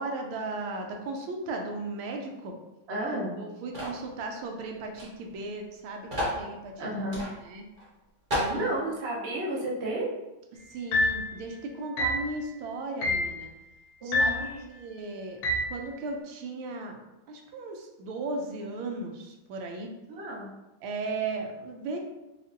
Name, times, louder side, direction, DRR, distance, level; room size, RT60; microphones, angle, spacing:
voice 1, 0.0-2.5 3.4-6.8 7.4-7.6 8.3-8.7 10.7-13.5 14.0-15.4 15.7-17.0 17.3-19.9 20.8-22.0, right 3 dB, 90° right, 3 dB, 1.4 m, -36 dB
voice 2, 2.9-3.4 6.8-7.2 8.5-10.1 14.0-14.6 20.1-20.5, right 1 dB, 65° right, -4 dB, 0.6 m, -32 dB
sound 1, 3.7-4.0 4.9-5.1 5.3-5.4 6.1-6.4 7.1-7.3 7.8-7.9 8.3-8.6, equal, 30° right, 1.0 m, -30 dB
sound 2, 10.9-11.3 12.0-12.3 13.0-13.3 14.1-14.5 15.4-15.8, left 1 dB, 80° left, 1.4 m, -26 dB
5.0 x 2.5 x 2.5 m, 1.0 s
omnidirectional pair, 2.3 m